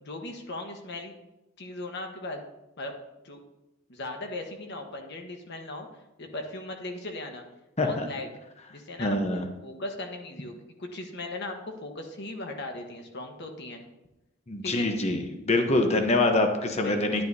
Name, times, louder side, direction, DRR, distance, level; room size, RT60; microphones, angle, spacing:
voice 1, 0.0-1.2 1.6-2.4 2.8-2.9 3.2-3.4 3.9-5.9 6.2-7.5 7.8-8.3 8.7-13.8 14.6-14.9 16.7-17.2, left 2 dB, 55° left, 4 dB, 1.2 m, -38 dB
voice 2, 7.8-8.1 9.0-9.5 14.5-17.2, left 2 dB, 35° left, 5 dB, 0.9 m, -25 dB
11.0 x 10.0 x 2.7 m, 0.95 s
head